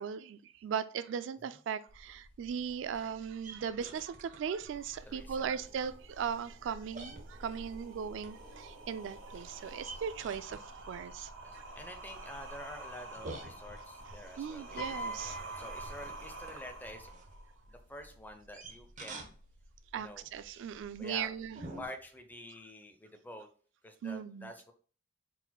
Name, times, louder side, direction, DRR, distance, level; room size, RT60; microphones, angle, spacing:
voice 1, 0.0-11.6 14.4-15.5 19.9-21.6 24.0-24.5, right 7 dB, 70° right, 14 dB, 0.3 m, -38 dB
sound 1, 1.9-21.9, right 2 dB, 45° right, 1.0 m, -52 dB
sound 2, 4.7-17.6, right 2 dB, 90° right, 1.0 m, -49 dB
voice 2, 5.0-5.6 9.8-10.0 11.4-17.1 17.7-19.3 19.9-20.3 21.0-21.3 21.7-23.5 23.8-24.7, left 1 dB, 10° left, 6 dB, 0.6 m, -48 dB
Piano, 14.8-17.1 18.2-18.4, right 1 dB, 55° left, 2.0 m, -43 dB
4.3 x 4.1 x 2.3 m, 0.42 s
head